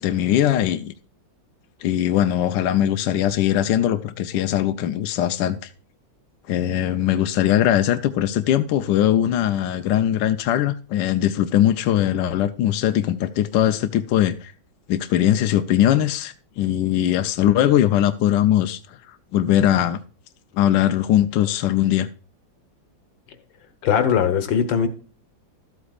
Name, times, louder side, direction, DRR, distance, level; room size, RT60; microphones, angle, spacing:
voice 1, 0.0-0.9 1.8-5.7 6.5-14.5 14.9-20.0 20.5-22.1, left 11 dB, 75° left, 1.3 m, -20 dB
voice 2, 23.8-24.9, left 7 dB, 90° left, 1.9 m, -20 dB
13.0 x 8.1 x 2.4 m
omnidirectional pair, 2.0 m